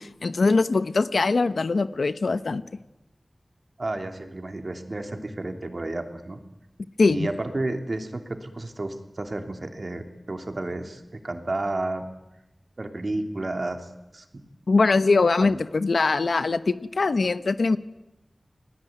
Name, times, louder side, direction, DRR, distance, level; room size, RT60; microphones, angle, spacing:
voice 1, 0.0-2.6 7.0-7.3 14.7-17.8, left 3 dB, 90° left, 13 dB, 1.1 m, -22 dB
voice 2, 3.8-6.4 7.1-12.1 12.8-14.3 15.4-15.6, right 2 dB, 50° right, 6 dB, 3.0 m, -31 dB
29.0 x 19.5 x 9.3 m, 0.96 s
wide cardioid pair, 70°, 0 cm